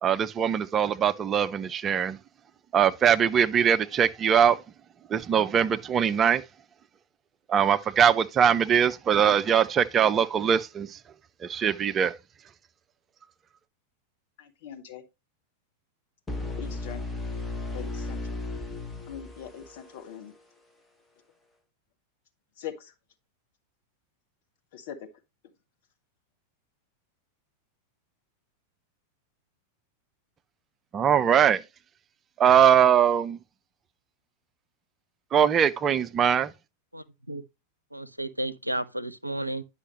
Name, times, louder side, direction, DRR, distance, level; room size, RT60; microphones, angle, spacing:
voice 1, 0.0-2.2 2.7-4.6 5.1-6.4 7.5-11.0 11.4-12.2 30.9-31.6 32.4-33.4 35.3-36.5, right 8 dB, 25° right, 0.5 m, -22 dB
voice 2, 14.4-15.0 16.6-17.0 17.7-18.2 19.1-20.3 22.6-22.7 24.7-25.0, left 9 dB, 50° left, 1.2 m, -41 dB
sound 1, 16.3-20.1, left 2 dB, 10° left, 1.3 m, -35 dB
voice 3, 36.9-37.4 37.9-39.6, right 1 dB, 85° right, 0.5 m, -33 dB
9.8 x 5.6 x 3.0 m
figure-of-eight pair, 90°, 0 cm